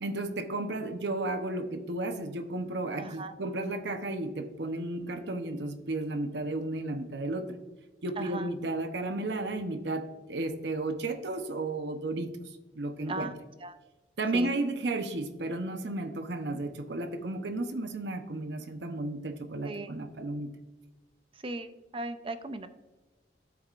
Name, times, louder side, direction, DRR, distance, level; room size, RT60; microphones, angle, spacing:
voice 1, 0.0-7.6 8.0-12.5 12.7-13.3 14.2-20.5, right 2 dB, 70° right, 7 dB, 0.8 m, -33 dB
voice 2, 3.0-3.3 8.2-8.5 13.1-13.7 14.3-14.5 19.6-19.9 21.4-22.7, right 2 dB, 30° right, 10 dB, 0.5 m, -37 dB
13.0 x 4.8 x 2.5 m, 1.2 s
head